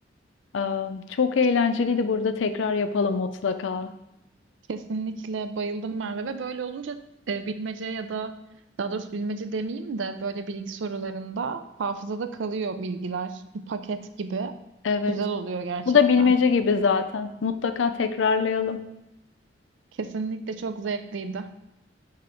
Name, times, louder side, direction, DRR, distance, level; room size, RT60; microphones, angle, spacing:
voice 1, 0.5-3.9 14.8-15.2 15.9-18.8, left 5 dB, 90° left, 10 dB, 0.5 m, -23 dB
voice 2, 4.7-7.0 7.3-8.4 8.8-14.5 15.1-16.3 20.0-21.5, right 4 dB, 80° right, 10 dB, 0.4 m, -31 dB
6.2 x 3.6 x 4.4 m, 0.85 s
head